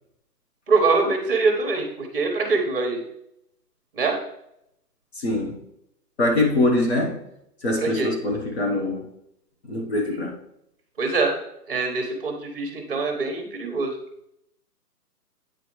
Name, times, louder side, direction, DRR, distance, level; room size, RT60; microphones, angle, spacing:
voice 1, 0.7-3.0 3.9-4.2 7.8-8.1 11.0-11.3 11.7-14.0, right 3 dB, 35° right, 1.1 m, -23 dB
voice 2, 5.2-5.6 6.2-7.2 7.6-9.0 9.7-10.3, left 2 dB, 40° left, 1.0 m, -23 dB
8.5 x 4.9 x 3.1 m
hypercardioid pair, 170°, 48 cm